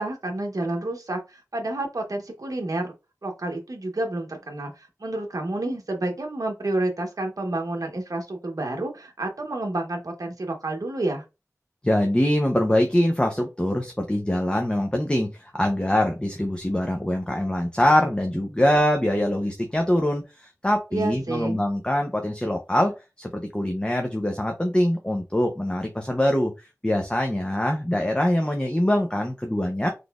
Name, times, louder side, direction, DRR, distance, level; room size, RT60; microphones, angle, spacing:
voice 1, 0.0-2.9 3.2-11.2 20.9-21.6, right 2 dB, 80° right, 2 dB, 0.9 m, -29 dB
voice 2, 11.8-29.9, left 1 dB, 15° left, 3 dB, 0.6 m, -23 dB
4.1 x 3.2 x 2.3 m, 0.27 s
wide cardioid pair, 55°, 6 cm